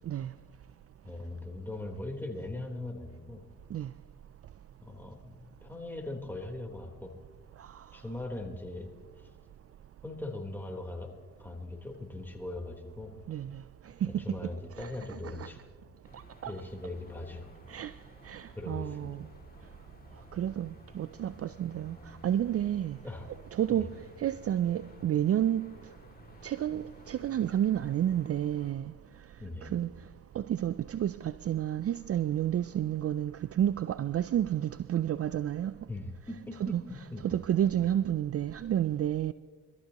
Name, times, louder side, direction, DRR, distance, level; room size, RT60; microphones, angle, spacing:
voice 1, 1.0-3.4 4.8-7.1 7.9-8.9 10.0-11.1 11.4-13.1 14.1-15.6 16.5-17.5 18.6-19.2 23.0-23.3 23.7-23.9 29.4-29.7 35.9-37.2, left 2 dB, 5° left, 3.8 m, -40 dB
voice 2, 13.3-13.6 14.0-15.5 16.1-16.6 17.7-17.9 18.2-19.3 20.3-23.0 23.5-25.9 26.4-28.9 29.6-29.9 30.3-35.7 36.6-36.8 37.2-39.3, right 10 dB, 45° right, 0.5 m, -31 dB
sound 1, 16.0-28.7, left 2 dB, 30° left, 2.6 m, -55 dB
24.5 x 14.0 x 3.0 m
supercardioid pair, 50°, 32 cm